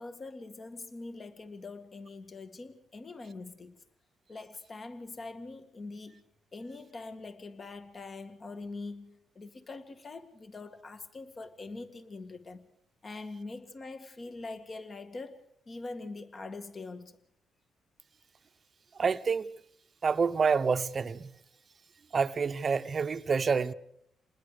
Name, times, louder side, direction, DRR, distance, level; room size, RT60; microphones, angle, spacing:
voice 1, 0.0-3.8 4.3-6.2 6.5-12.7 13.0-17.2, left 3 dB, 35° left, 1.9 m, -43 dB
voice 2, 19.0-19.5 20.0-21.3 22.1-23.7, right 5 dB, 40° right, 0.9 m, -27 dB
28.0 x 20.5 x 5.0 m
cardioid pair, 90°, 0 cm